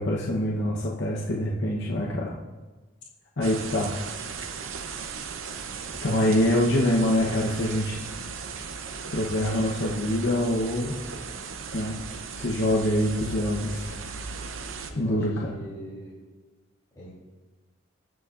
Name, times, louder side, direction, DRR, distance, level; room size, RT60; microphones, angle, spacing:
voice 1, 0.0-2.4 3.4-3.9 6.0-8.0 9.1-11.0 11.7-12.0 12.4-13.9 15.0-15.5, left 1 dB, 60° left, -3 dB, 1.0 m, -25 dB
sound 1, 3.4-14.9, right 5 dB, 70° right, 0.7 m, -37 dB
voice 2, 14.9-16.1 16.9-17.2, equal, 20° left, -10 dB, 3.1 m, -41 dB
20.0 x 7.1 x 2.5 m, 1.2 s
head